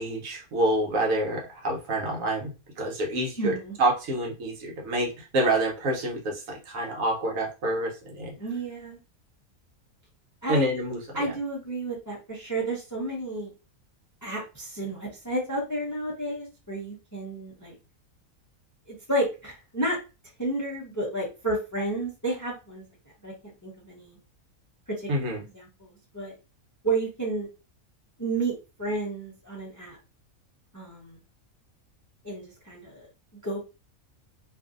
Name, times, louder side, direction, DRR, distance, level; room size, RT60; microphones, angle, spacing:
voice 1, 0.0-2.5 2.8-8.3 10.5-11.3 25.1-25.4, right 1 dB, 70° right, 0 dB, 1.2 m, -27 dB
voice 2, 3.4-3.8 8.4-9.0 10.4-10.7 11.1-13.5 14.2-17.8 18.9-20.0 20.4-22.8 23.2-24.2 24.9-26.3 26.8-27.5 28.2-28.5 28.8-30.0 30.7-31.2 32.2-33.1 33.4-33.6, right 2 dB, 20° left, -3 dB, 0.5 m, -31 dB
2.6 x 2.5 x 2.4 m, 0.30 s
omnidirectional pair, 1.5 m